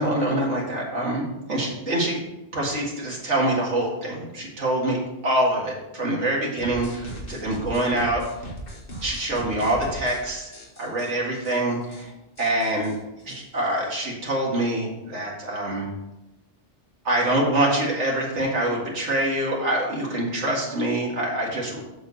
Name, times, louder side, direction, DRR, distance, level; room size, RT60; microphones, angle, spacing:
voice 1, 0.0-2.2 2.5-8.2 9.0-10.5 10.8-12.1 12.4-12.9 13.3-15.9 17.0-21.8, right 1 dB, 75° right, -3 dB, 2.4 m, -25 dB
sound 1, 6.6-10.2 10.5-11.1 11.4-11.6 11.8-12.0 12.4-14.1, right 1 dB, 50° left, 1.8 m, -38 dB
7.9 x 6.7 x 4.1 m, 0.95 s
omnidirectional pair, 1.2 m